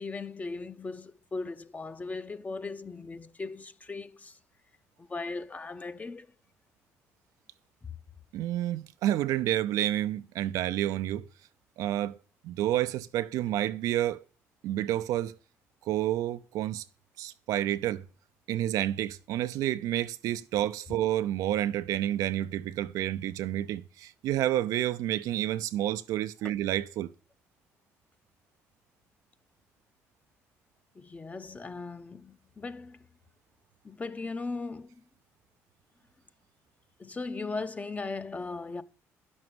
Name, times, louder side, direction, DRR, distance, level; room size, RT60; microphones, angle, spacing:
voice 1, 0.0-4.4 5.0-6.3 7.8-7.9 26.4-26.5 30.9-33.1 33.8-35.0 37.0-38.8, left 3 dB, 25° left, 0.8 m, -38 dB
voice 2, 8.3-11.3 11.8-12.2 12.4-14.2 14.6-15.3 15.9-16.8 17.2-18.0 18.5-27.1, right 13 dB, 80° right, 0.6 m, -29 dB
11.0 x 6.3 x 7.8 m
cardioid pair, 80°, 6 cm